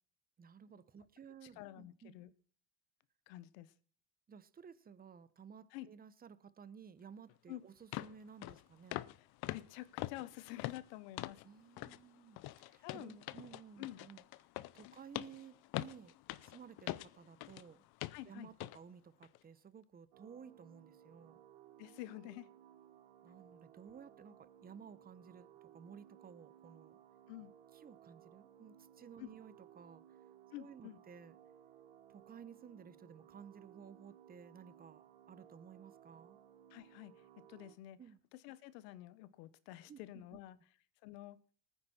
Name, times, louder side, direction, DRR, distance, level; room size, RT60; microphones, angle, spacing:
voice 1, 0.4-2.1 4.3-9.0 11.4-14.2 14.7-17.8 18.2-21.4 23.2-27.0 27.7-30.0 30.5-31.4 32.1-36.4 38.0-38.2 39.9-40.4, right 7 dB, 20° right, 0.8 m, -55 dB
voice 2, 1.6-2.3 3.3-3.7 5.7-5.9 7.5-7.6 9.5-11.4 12.8-13.2 13.8-14.0 14.8-14.9 18.1-18.5 21.8-22.5 27.3-27.5 29.2-29.3 30.5-31.0 36.7-37.2 37.5-38.0 38.4-40.6 41.0-41.4, left 15 dB, 85° left, 1.2 m, -49 dB
sound 1, 7.3-7.4 7.9-8.1 8.4-8.6 8.9-9.2 9.4-11.5 11.8-12.0 12.4-17.7 18.0-18.2 18.6-18.8 19.2-19.4, left 17 dB, 50° left, 0.7 m, -43 dB
sound 2, 20.1-37.8, right 10 dB, 70° right, 1.7 m, -61 dB
19.5 x 9.6 x 4.2 m
cardioid pair, 125°, 48 cm